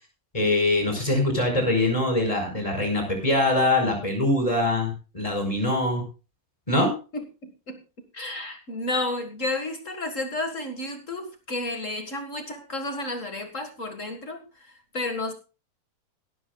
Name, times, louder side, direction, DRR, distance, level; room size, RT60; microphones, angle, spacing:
voice 1, 0.3-6.0 6.7-6.9, left 2 dB, 10° left, 3 dB, 5.0 m, -23 dB
voice 2, 7.1-7.8 8.1-15.3, left 2 dB, 35° left, 6 dB, 1.2 m, -32 dB
17.0 x 13.5 x 2.3 m, 0.31 s
omnidirectional pair, 3.9 m